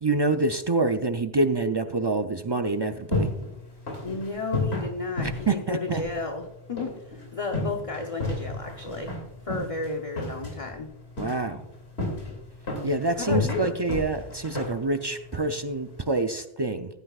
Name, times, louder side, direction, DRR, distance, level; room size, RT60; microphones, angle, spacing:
voice 1, 0.0-3.3 5.5-6.0 11.2-11.6 12.8-16.9, right 2 dB, 40° right, 8 dB, 0.4 m, -26 dB
sound 1, 2.7-16.1, left 2 dB, 75° left, 2.9 m, -34 dB
voice 2, 4.0-9.2 9.4-10.9 13.1-13.8, left 3 dB, 35° left, 3 dB, 0.9 m, -33 dB
15.0 x 9.9 x 2.4 m, 0.84 s
omnidirectional pair, 1.1 m